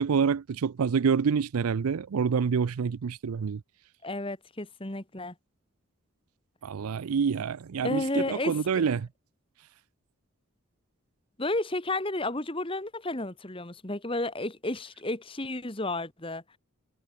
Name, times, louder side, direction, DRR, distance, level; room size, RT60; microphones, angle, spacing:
voice 1, 0.0-3.6 6.6-9.1, right 6 dB, 90° right, 0.5 m, -27 dB
voice 2, 4.0-5.3 7.8-8.8 11.4-16.4, left 2 dB, 25° left, 1.6 m, -32 dB
head